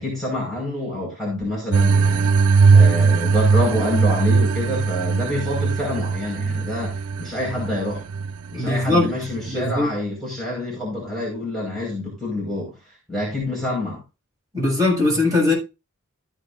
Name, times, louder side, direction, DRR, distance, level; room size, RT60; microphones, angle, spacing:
voice 1, 0.0-2.3 2.7-8.0 8.5-14.0, left 1 dB, ahead, 5.1 m, -27 dB
sound 1, 1.7-9.8, right 4 dB, 85° right, 0.5 m, -19 dB
voice 2, 8.5-9.1 9.4-9.9 14.5-15.5, left 2 dB, 15° right, 6.5 m, -20 dB
14.5 x 9.0 x 2.6 m
head